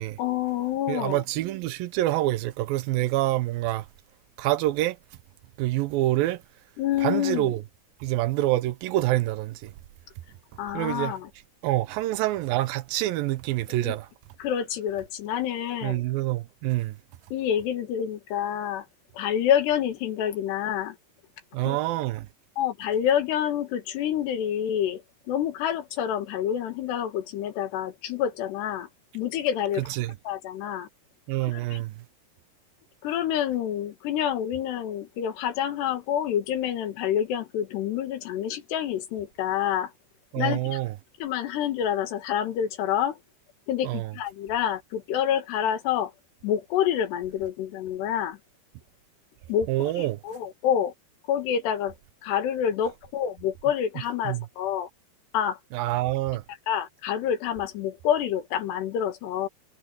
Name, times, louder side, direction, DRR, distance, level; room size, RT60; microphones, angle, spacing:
voice 1, 0.2-1.2 6.8-7.5 10.6-11.3 13.8-14.0 14.4-16.0 17.3-18.9 19.1-21.0 21.7-21.8 22.6-25.0 25.3-28.9 29.1-29.8 30.3-30.9 31.5-31.8 33.0-39.9 40.4-40.8 41.2-43.2 43.7-46.1 46.4-48.4 49.5-50.9 51.3-51.9 52.2-54.9 55.3-55.6 56.7-59.5, left 9 dB, 85° left, 4.0 m, -27 dB
voice 2, 0.9-3.9 4.4-5.0 5.6-6.4 7.0-7.6 8.0-9.7 10.7-11.2 11.6-14.1 15.8-17.0 21.5-22.3 29.8-30.2 31.3-32.0 40.3-40.9 43.8-44.1 49.7-50.2 54.2-54.5 55.7-56.4, right 16 dB, 75° right, 2.3 m, -26 dB
omnidirectional pair, 4.7 m